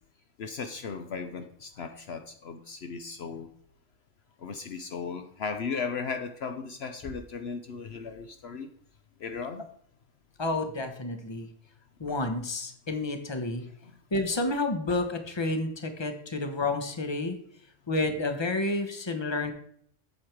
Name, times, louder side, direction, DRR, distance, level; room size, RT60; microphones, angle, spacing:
voice 1, 0.4-3.5 4.4-8.7 9.2-9.6 13.8-13.9, left 5 dB, 65° left, 7 dB, 1.0 m, -36 dB
voice 2, 10.4-11.5 12.0-13.7 14.1-17.4 17.9-19.5, left 2 dB, 25° left, 7 dB, 1.1 m, -30 dB
8.4 x 7.9 x 4.6 m, 0.65 s
omnidirectional pair, 1.2 m